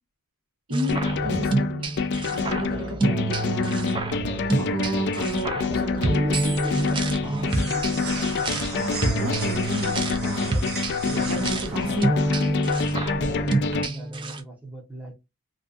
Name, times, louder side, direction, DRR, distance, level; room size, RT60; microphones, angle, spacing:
sound 1, 0.7-14.4, right 2 dB, 20° right, 0.4 m, -28 dB
voice 1, 0.7-1.9 2.3-4.0 4.6-6.2 9.2-10.0 11.3-12.1, equal, 70° right, 1.0 m, -31 dB
sound 2, 0.9-13.9, left 5 dB, 50° left, 0.3 m, -27 dB
voice 2, 5.5-10.1 10.5-10.8 11.0-12.7 13.1-15.1, right 3 dB, 5° right, 0.8 m, -38 dB
sound 3, 5.5-13.7, right 4 dB, 45° right, 0.9 m, -38 dB
2.5 x 2.4 x 2.4 m
head